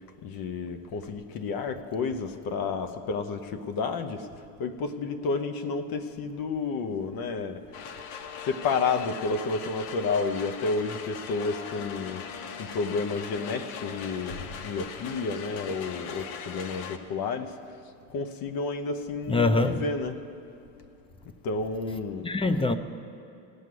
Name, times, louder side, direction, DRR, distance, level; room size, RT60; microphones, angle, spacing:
voice 1, 0.2-4.3 4.6-7.7 8.4-12.3 12.6-17.8 18.1-20.2 21.4-22.3, left 4 dB, 50° left, 1.0 m, -31 dB
sound 1, 7.7-17.0, left 6 dB, 80° left, 1.0 m, -40 dB
voice 2, 19.3-19.8 22.2-22.8, left 2 dB, 10° left, 0.6 m, -24 dB
16.0 x 6.1 x 9.5 m
supercardioid pair, 90°, 45 cm